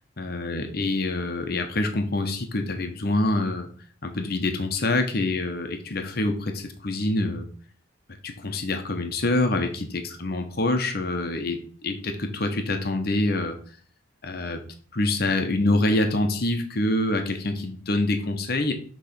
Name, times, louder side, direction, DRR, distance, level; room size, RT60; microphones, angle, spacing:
voice 1, 0.2-3.7 4.0-7.5 8.2-13.6 14.2-14.6 14.9-18.7, left 2 dB, 50° left, 5 dB, 0.9 m, -26 dB
6.7 x 3.2 x 5.8 m, 0.44 s
head